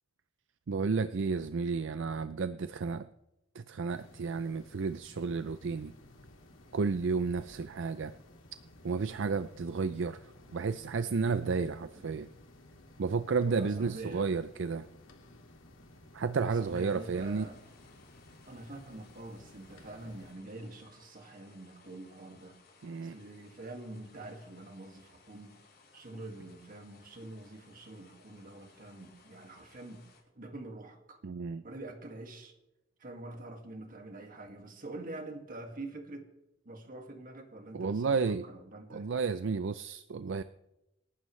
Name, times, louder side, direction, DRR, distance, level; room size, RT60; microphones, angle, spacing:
voice 1, 0.7-3.1 3.6-5.9 6.7-8.1 8.8-10.2 10.5-12.3 13.0-14.9 16.1-17.5 22.8-23.2 31.2-31.6 37.7-38.4 38.9-40.4, right 4 dB, 65° right, 12 dB, 0.5 m, -32 dB
sound 1, 3.9-20.3, left 1 dB, 75° left, 2.1 m, -56 dB
voice 2, 13.5-14.4 16.3-17.6 18.5-22.6 23.0-25.6 25.9-30.0 30.4-31.2 31.6-32.6 33.0-36.3 36.7-39.1, right 2 dB, 45° right, 4 dB, 2.0 m, -46 dB
sound 2, 16.5-30.2, left 4 dB, 50° left, 7.3 m, -62 dB
28.0 x 12.0 x 3.2 m, 0.93 s
head